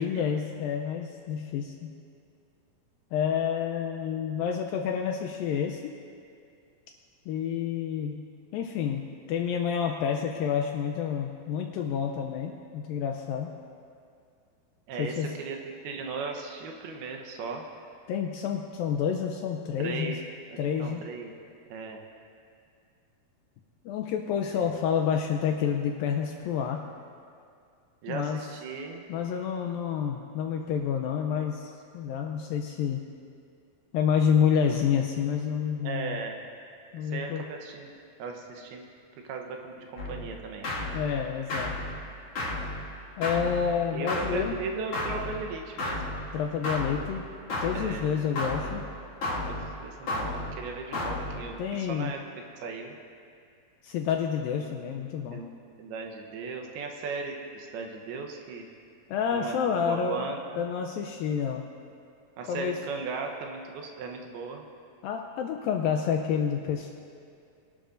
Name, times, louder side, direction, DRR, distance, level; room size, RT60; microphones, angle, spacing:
voice 1, 0.0-1.9 3.1-6.0 7.3-8.3 8.5-13.5 15.0-15.3 18.1-20.2 20.6-21.0 23.9-26.8 28.1-28.4 29.1-33.1 33.9-36.2 36.9-37.4 40.9-41.8 43.2-44.6 46.3-47.3 47.6-48.8 51.6-52.1 53.8-55.4 59.1-60.2 60.6-61.7 62.5-62.8 65.0-66.9, left 7 dB, 85° left, 3 dB, 2.1 m, -29 dB
voice 2, 14.9-15.6 15.8-17.7 19.8-20.2 20.5-21.3 21.7-22.0 24.5-24.7 28.0-29.0 35.8-36.5 36.9-38.9 39.3-40.7 42.6-42.9 43.9-46.0 47.7-48.1 49.5-52.2 52.6-53.0 55.3-55.5 55.8-58.7 59.3-60.6 62.4-64.7, right 4 dB, 75° right, 2 dB, 2.8 m, -37 dB
sound 1, 40.0-51.7, left 1 dB, 45° left, 2.6 m, -34 dB
23.0 x 12.0 x 2.6 m, 2.3 s
omnidirectional pair, 4.6 m